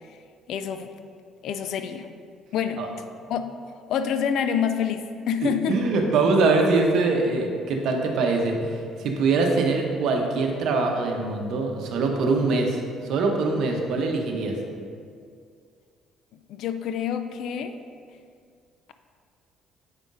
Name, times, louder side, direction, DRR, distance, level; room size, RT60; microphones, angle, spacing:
voice 1, 0.5-0.9 1.4-2.1 2.5-2.8 3.3-3.5 3.9-5.8 16.5-17.8, left 8 dB, 65° left, 9 dB, 0.4 m, -27 dB
voice 2, 5.4-12.8 13.1-14.6, right 3 dB, 65° right, 2 dB, 0.8 m, -23 dB
8.0 x 5.2 x 2.5 m, 2.2 s
hypercardioid pair, 55°, 0 cm